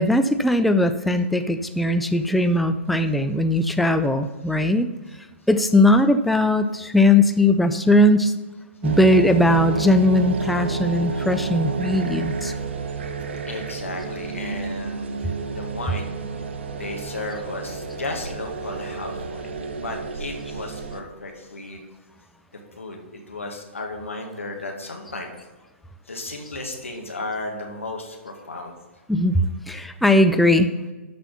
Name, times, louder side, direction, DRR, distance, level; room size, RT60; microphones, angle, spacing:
voice 1, 0.0-4.9 5.5-8.3 8.8-12.5 29.1-30.7, left 1 dB, ahead, 8 dB, 0.3 m, -19 dB
sound 1, 8.8-21.0, right 4 dB, 60° right, 0.9 m, -30 dB
voice 2, 11.2-11.5 13.5-16.1 16.7-21.9 22.8-25.3 26.1-28.8, left 2 dB, 80° left, 1 dB, 1.9 m, -34 dB
12.5 x 4.3 x 5.6 m, 1.3 s
figure-of-eight pair, 120°, 7 cm